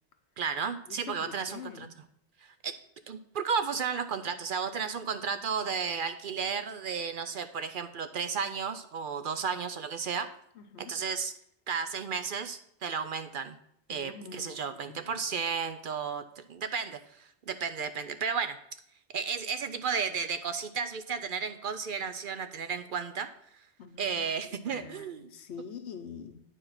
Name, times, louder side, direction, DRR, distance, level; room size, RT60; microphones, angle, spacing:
voice 1, 0.4-1.9 2.4-2.7 3.1-10.3 10.8-11.3 11.7-13.6 13.9-18.6 19.1-23.3 24.0-25.2, right 6 dB, 60° right, 9 dB, 0.6 m, -33 dB
voice 2, 0.9-1.9 10.5-11.0 13.9-15.2 23.8-26.4, left 7 dB, 80° left, 8 dB, 1.1 m, -45 dB
9.2 x 4.6 x 5.7 m, 0.71 s
omnidirectional pair, 1.1 m